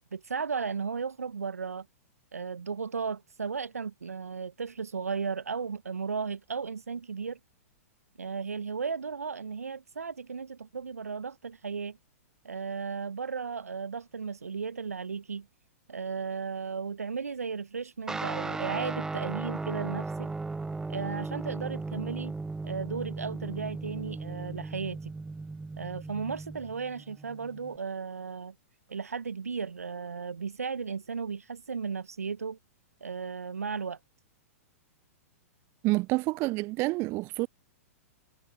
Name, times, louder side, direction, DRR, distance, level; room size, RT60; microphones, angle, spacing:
voice 1, 0.0-1.9 2.3-7.4 8.2-12.0 12.4-15.5 15.9-20.3 20.9-22.3 22.6-25.1 25.8-28.5 28.9-32.6 33.0-34.0, right 5 dB, 80° right, 1.1 m, -35 dB
Guitar, 18.1-27.8, right 3 dB, 10° right, 0.9 m, -36 dB
voice 2, 35.8-37.5, right 22 dB, 30° right, 0.4 m, -28 dB
figure-of-eight pair, 105°, 8 cm